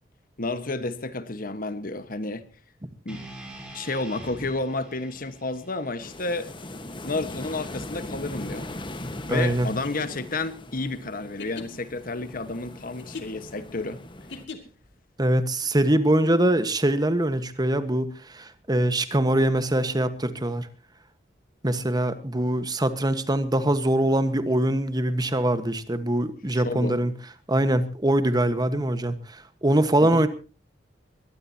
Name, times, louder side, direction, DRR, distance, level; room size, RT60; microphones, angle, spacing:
voice 1, 0.4-2.5 3.0-3.2 3.7-6.5 7.0-8.7 9.3-14.0 26.5-26.9 30.0-30.3, left 2 dB, 50° left, 1.4 m, -31 dB
sound 1, 3.1-7.3, right 1 dB, 5° right, 5.9 m, -45 dB
sound 2, 6.0-14.5, left 1 dB, 25° left, 1.5 m, -39 dB
voice 2, 9.3-9.7 15.2-20.7 21.6-27.1 27.5-30.3, right 1 dB, 20° right, 1.4 m, -23 dB
sound 3, 9.8-14.9, left 4 dB, 75° left, 2.4 m, -42 dB
22.5 x 17.5 x 2.9 m
head